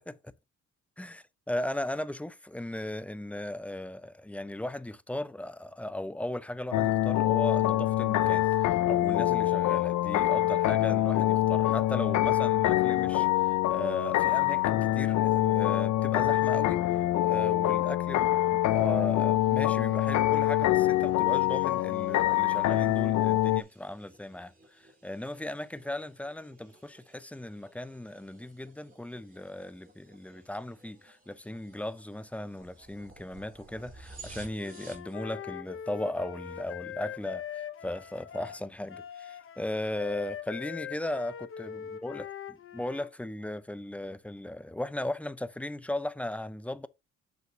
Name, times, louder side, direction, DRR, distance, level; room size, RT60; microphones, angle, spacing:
voice 1, 1.0-42.3 42.7-46.9, left 1 dB, 5° left, 0.4 m, -37 dB
sound 1, 6.7-23.6, left 14 dB, 65° left, 0.5 m, -25 dB
sound 2, 18.8-35.1, right 3 dB, 30° right, 3.0 m, -56 dB
Wind instrument woodwind instrument, 34.6-43.1, left 9 dB, 45° left, 0.8 m, -42 dB
7.6 x 6.3 x 2.8 m
cardioid pair, 90°, 30 cm